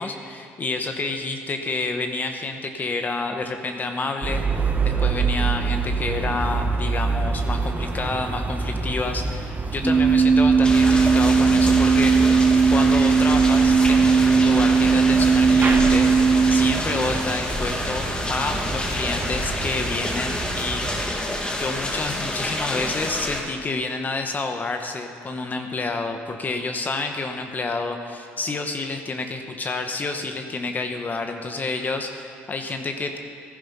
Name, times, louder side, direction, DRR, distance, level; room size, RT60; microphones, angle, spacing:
voice 1, 0.0-12.4 12.7-16.1 16.5-21.1 21.4-33.2, left 3 dB, 35° left, 5 dB, 1.2 m, -29 dB
sound 1, 4.2-21.0, right 4 dB, 30° right, 1.2 m, -28 dB
sound 2, 9.8-16.7, right 5 dB, 5° right, 1.1 m, -17 dB
sound 3, 10.6-23.4, left 1 dB, 20° left, 1.8 m, -28 dB
15.0 x 10.5 x 5.6 m, 2.7 s
supercardioid pair, 80°, 5 cm